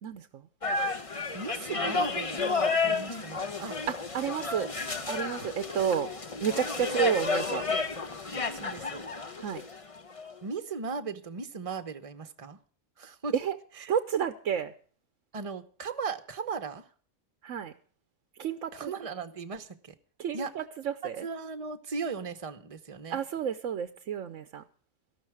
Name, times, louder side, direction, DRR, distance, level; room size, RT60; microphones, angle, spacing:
voice 1, 0.0-0.4 4.1-4.7 5.1-6.1 6.4-7.6 9.4-9.6 13.3-13.6 13.9-14.7 17.4-17.7 18.4-18.9 20.2-21.3 23.1-24.6, right 8 dB, 85° right, 10 dB, 1.2 m, -30 dB
sound 1, 0.6-10.3, left 4 dB, 30° left, 0.9 m, -31 dB
voice 2, 1.1-3.8 4.6-4.7 6.8-7.0 8.5-9.0 10.4-12.6 13.0-13.4 13.8-13.9 15.3-16.9 18.7-19.9 20.3-20.5 21.2-23.2, right 5 dB, 30° right, 9 dB, 1.0 m, -37 dB
14.0 x 12.0 x 4.8 m, 0.44 s
omnidirectional pair, 1.3 m